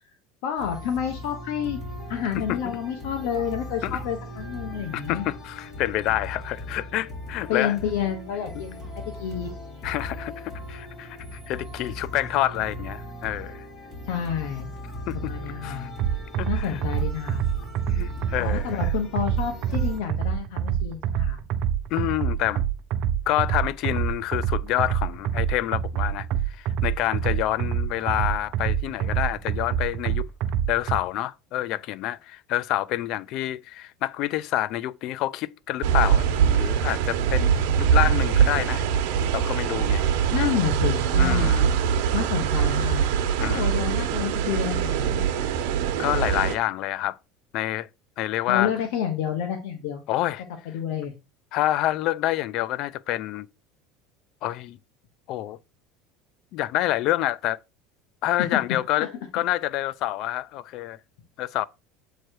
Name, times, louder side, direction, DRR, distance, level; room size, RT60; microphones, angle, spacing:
voice 1, 0.4-1.8 2.1-5.2 7.5-8.8 9.2-9.5 14.1-14.7 15.1-15.9 16.5-17.4 18.4-21.4 40.3-41.7 42.1-43.0 43.4-45.4 48.5-50.0 50.6-51.1 58.5-58.6 59.0-59.1, left 9 dB, 75° left, 1.1 m, -29 dB
sound 1, 0.6-20.0, left 1 dB, 25° left, 2.9 m, -38 dB
voice 2, 4.9-7.8 8.5-8.6 9.8-13.7 15.1-15.3 15.6-15.9 16.4-16.8 17.9-18.8 21.9-22.6 23.3-30.3 30.7-38.8 39.3-40.1 41.1-41.7 43.4-43.7 46.0-47.2 47.5-47.9 48.2-48.7 50.1-50.4 51.5-53.5 54.4-54.8 55.3-55.6 56.5-57.6 58.2-61.0 61.4-61.6, left 14 dB, 50° left, 0.3 m, -27 dB
sound 2, 16.0-31.0, right 9 dB, 50° right, 0.6 m, -26 dB
sound 3, 35.8-46.6, right 8 dB, 75° right, 1.0 m, -23 dB
7.7 x 3.2 x 4.5 m
cardioid pair, 155°, 0 cm